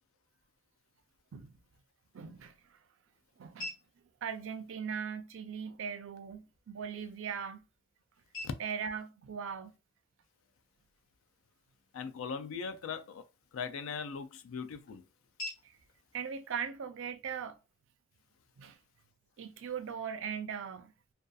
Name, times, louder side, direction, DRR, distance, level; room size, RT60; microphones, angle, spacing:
sound 1, 1.8-17.8, left 1 dB, 65° left, 1.2 m, -53 dB
voice 1, 2.1-2.8 3.4-3.7 4.2-7.6 8.6-9.7 15.6-15.7 16.1-17.6 18.6-18.8 19.4-20.9, right 7 dB, 70° right, 0.4 m, -39 dB
voice 2, 11.9-13.2 13.5-15.0, left 6 dB, 80° left, 0.4 m, -39 dB
2.6 x 2.3 x 2.3 m
head